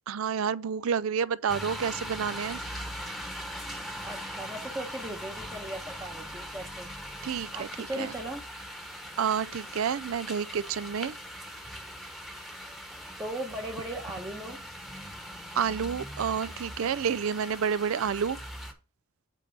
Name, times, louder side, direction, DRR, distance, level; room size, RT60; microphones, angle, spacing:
voice 1, 0.1-2.6 7.2-7.7 8.0-8.1 9.2-11.2 15.5-18.4, right 7 dB, 70° right, 0.4 m, -29 dB
sound 1, 1.5-18.7, equal, ahead, 1.1 m, -40 dB
voice 2, 4.0-6.9 7.5-8.4 13.1-14.6, right 1 dB, 15° right, 0.9 m, -38 dB
8.3 x 3.3 x 5.7 m
head